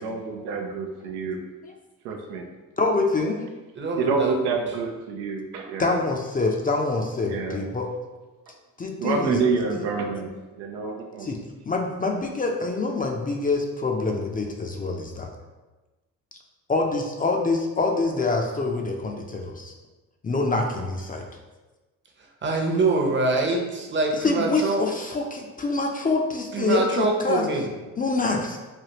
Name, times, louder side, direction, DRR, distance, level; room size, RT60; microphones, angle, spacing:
voice 1, 0.0-1.4 2.0-2.5 4.0-5.9 7.3-7.6 9.0-10.3 10.6-11.3, right 4 dB, 90° right, 3 dB, 0.5 m, -27 dB
voice 2, 2.8-3.5 5.8-7.9 8.8-9.4 9.7-9.9 11.2-11.4 11.7-15.3 16.7-19.7 20.2-21.2 24.1-27.5 28.0-28.6, left 3 dB, 25° left, 2 dB, 0.4 m, -25 dB
voice 3, 3.8-4.3 22.4-24.8 26.5-27.7, right 2 dB, 30° right, 1 dB, 0.7 m, -24 dB
3.3 x 2.3 x 2.8 m, 1.2 s
supercardioid pair, 55°, 38 cm